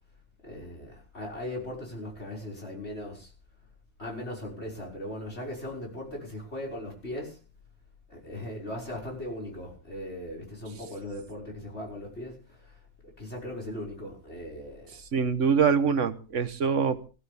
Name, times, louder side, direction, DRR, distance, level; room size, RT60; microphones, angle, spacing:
voice 1, 0.4-3.3 4.0-7.4 8.1-12.4 13.2-14.9, left 1 dB, 60° left, 6.1 m, -38 dB
voice 2, 15.1-17.1, right 6 dB, 85° right, 1.5 m, -24 dB
18.5 x 15.5 x 3.5 m
omnidirectional pair, 1.2 m